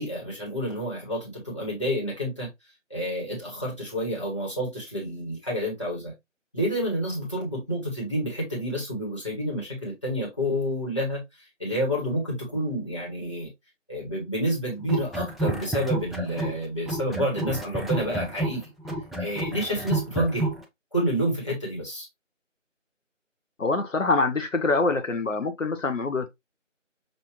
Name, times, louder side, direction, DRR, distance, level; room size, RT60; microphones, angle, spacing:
voice 1, 0.0-2.5 2.9-6.1 6.5-13.5 13.9-18.6 19.2-20.5 20.9-22.1, equal, 25° left, 1.4 m, -29 dB
sound 1, 14.8-16.6 16.9-20.6, right 1 dB, ahead, 0.5 m, -29 dB
voice 2, 23.6-26.3, left 3 dB, 75° left, 0.8 m, -25 dB
6.1 x 2.6 x 2.9 m
figure-of-eight pair, 170°, 39 cm